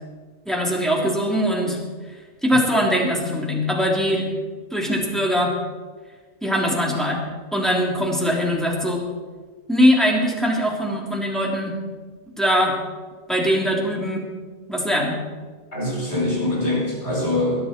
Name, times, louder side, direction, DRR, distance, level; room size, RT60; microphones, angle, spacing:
voice 1, 0.4-1.8 2.4-4.3 4.7-5.5 6.4-7.2 7.5-9.0 9.7-11.8 12.4-12.8 13.3-14.3 14.7-15.2, equal, ahead, -2 dB, 3.2 m, -21 dB
voice 2, 15.7-17.7, left 1 dB, 65° left, -2 dB, 5.1 m, -23 dB
21.0 x 12.5 x 4.5 m, 1.5 s
omnidirectional pair, 1.2 m